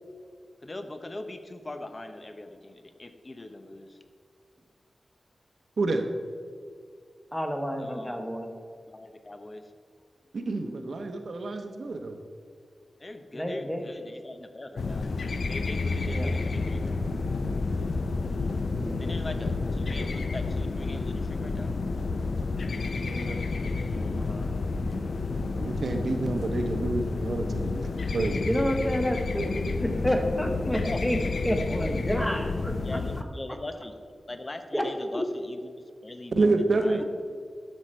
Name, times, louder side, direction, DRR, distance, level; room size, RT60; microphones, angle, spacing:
voice 1, 0.6-4.0 7.8-8.3 8.9-9.7 13.0-15.1 15.5-17.2 19.0-21.7 28.7-28.8 30.7-31.0 32.8-34.0 34.3-36.5 36.7-37.0, left 2 dB, 35° left, 8 dB, 0.8 m, -41 dB
voice 2, 7.3-8.5 13.3-13.9 16.1-16.4 18.7-19.1 23.0-23.3 23.6-24.5 28.4-31.2 31.4-33.2 34.7-35.2 37.0-37.1, equal, 5° left, 3 dB, 1.3 m, -30 dB
voice 3, 10.3-12.2 22.9-23.4 25.5-27.8 28.1-28.4 36.4-37.0, right 3 dB, 75° right, 5 dB, 0.9 m, -28 dB
sound 1, 14.8-33.2, left 3 dB, 70° left, 0.5 m, -30 dB
11.5 x 6.6 x 4.4 m, 2.1 s
wide cardioid pair, 70°, 0 cm